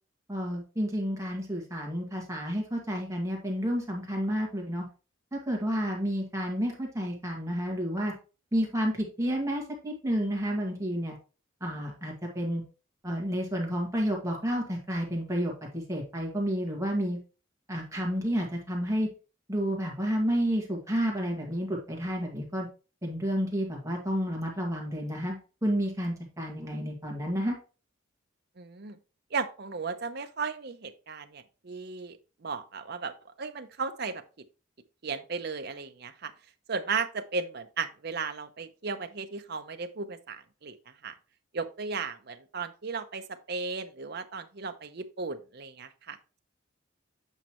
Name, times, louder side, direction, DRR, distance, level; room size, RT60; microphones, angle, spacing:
voice 1, 0.3-4.8 5.3-8.1 8.5-11.1 11.6-12.6 13.0-17.2 17.7-19.1 19.5-22.7 23.0-25.4 25.6-27.6, equal, 15° right, -1 dB, 1.8 m, -30 dB
voice 2, 28.6-29.0 29.3-34.2 35.0-36.3 36.7-41.1 41.5-46.4, right 4 dB, 55° right, 8 dB, 0.7 m, -35 dB
8.1 x 5.3 x 3.0 m, 0.34 s
head